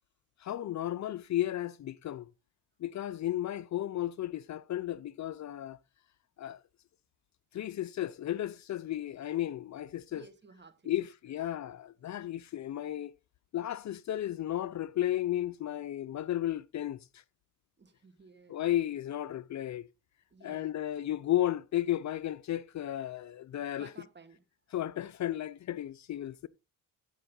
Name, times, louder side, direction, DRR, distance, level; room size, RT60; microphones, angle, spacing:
voice 1, 0.4-2.3 2.8-5.8 6.4-6.6 7.5-10.2 10.9-13.1 13.5-17.2 18.5-19.9 20.4-23.9 24.7-26.5, left 13 dB, 50° left, 0.6 m, -34 dB
voice 2, 10.1-10.9 17.8-18.6 20.3-20.8 23.8-24.5, right 4 dB, 30° right, 1.7 m, -55 dB
15.0 x 5.5 x 3.9 m
cardioid pair, 85°, 36 cm